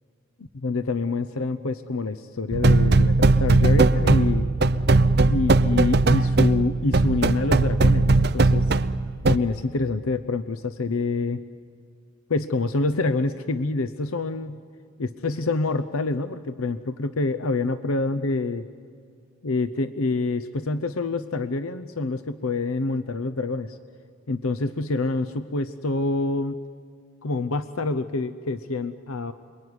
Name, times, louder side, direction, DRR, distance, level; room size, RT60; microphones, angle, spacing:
voice 1, 0.5-4.5 5.2-8.7 9.3-11.4 12.3-14.6 15.0-18.6 19.4-23.8 24.3-26.6 27.2-29.3, left 3 dB, 90° left, 11 dB, 0.8 m, -26 dB
sound 1, 2.5-9.4, right 3 dB, 50° right, 0.6 m, -19 dB
27.0 x 23.0 x 9.7 m, 2.1 s
head